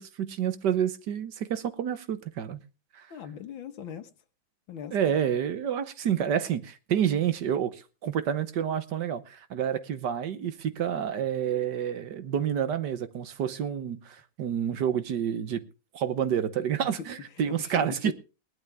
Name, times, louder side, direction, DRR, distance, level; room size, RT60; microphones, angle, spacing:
voice 1, 0.0-2.6 2.9-3.1 4.9-15.6 15.9-18.1, right 9 dB, 65° right, 1.6 m, -29 dB
voice 2, 3.1-4.1 4.7-5.0 17.0-17.1 17.5-18.1, left 7 dB, 90° left, 2.1 m, -39 dB
19.5 x 11.5 x 3.4 m
omnidirectional pair, 2.1 m